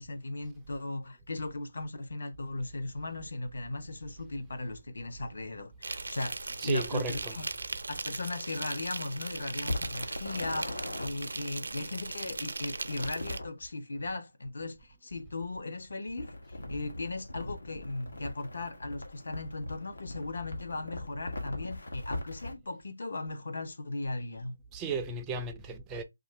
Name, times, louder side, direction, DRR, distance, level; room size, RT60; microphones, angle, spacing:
voice 1, 0.0-7.5 7.9-24.6, left 2 dB, 60° left, 0.6 m, -37 dB
Insect, 5.8-13.4, right 3 dB, 75° right, 0.4 m, -39 dB
voice 2, 6.6-7.4 24.7-26.0, right 4 dB, 10° right, 0.3 m, -35 dB
sound 1, 9.6-11.1 12.8-13.5 16.2-22.6, left 1 dB, 85° left, 1.1 m, -40 dB
2.9 x 2.4 x 3.2 m
hypercardioid pair, 170°, 0 cm